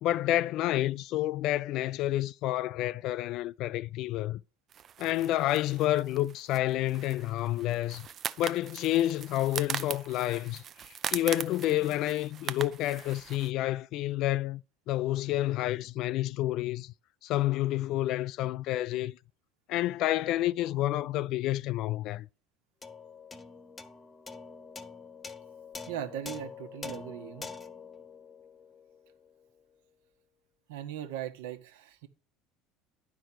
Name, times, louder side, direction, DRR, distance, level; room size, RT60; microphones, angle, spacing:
voice 1, 0.0-4.4 5.0-8.1 8.4-10.6 11.1-16.9 17.2-19.2 19.7-22.3, left 14 dB, 60° left, 0.3 m, -29 dB
sound 1, 4.7-13.5, right 9 dB, 45° right, 0.6 m, -40 dB
sound 2, 22.8-29.4, left 4 dB, 25° left, 1.0 m, -45 dB
voice 2, 25.9-27.5 30.7-32.1, right 11 dB, 75° right, 1.3 m, -39 dB
11.0 x 4.8 x 6.0 m
hypercardioid pair, 70°, 0 cm